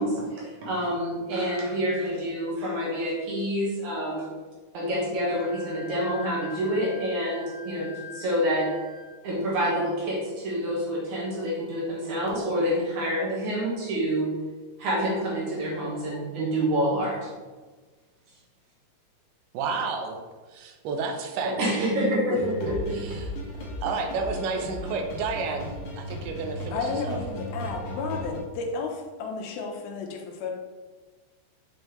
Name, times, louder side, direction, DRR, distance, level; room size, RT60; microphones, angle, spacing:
voice 1, 0.0-4.3 4.7-8.7 9.2-14.3 14.8-17.3 21.4-23.0, equal, 60° right, -4 dB, 2.4 m, -27 dB
Wind instrument woodwind instrument, 5.3-9.2, left 5 dB, 35° left, 2.2 m, -44 dB
voice 2, 19.5-20.2 20.5-21.9 22.9-25.7 26.0-27.2, right 4 dB, 85° right, 4 dB, 2.7 m, -31 dB
sound 1, 22.3-28.4, equal, 60° left, 2.1 m, -36 dB
voice 3, 26.7-30.5, left 4 dB, 80° left, 2 dB, 2.5 m, -32 dB
7.3 x 5.3 x 3.1 m, 1.3 s
omnidirectional pair, 4.5 m